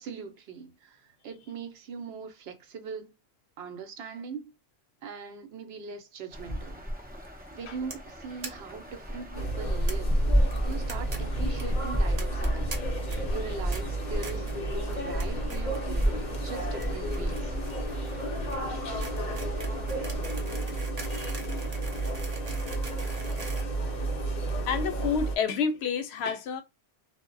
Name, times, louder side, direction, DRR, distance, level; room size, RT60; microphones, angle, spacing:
voice 1, 0.0-3.1 3.6-4.5 5.0-6.8 7.5-10.2 10.6-12.7 13.3-17.5, right 5 dB, 75° right, 0.9 m, -41 dB
sound 1, 6.3-20.4, equal, 15° right, 0.3 m, -32 dB
sound 2, 7.9-8.1 8.4-8.5 8.8-8.9 9.1-9.2 9.9-10.0 10.5-11.2 11.4-11.6 12.2-12.8 13.1-13.4 13.7-13.8 14.2-14.6 14.9-15.2 15.5-16.1 16.4-24.4, right 3 dB, 40° right, 0.7 m, -42 dB
sound 3, 9.3-25.4, right 2 dB, 50° left, 0.7 m, -33 dB
voice 2, 24.7-26.6, left 6 dB, 85° left, 0.8 m, -30 dB
2.1 x 2.1 x 3.7 m
omnidirectional pair, 1.1 m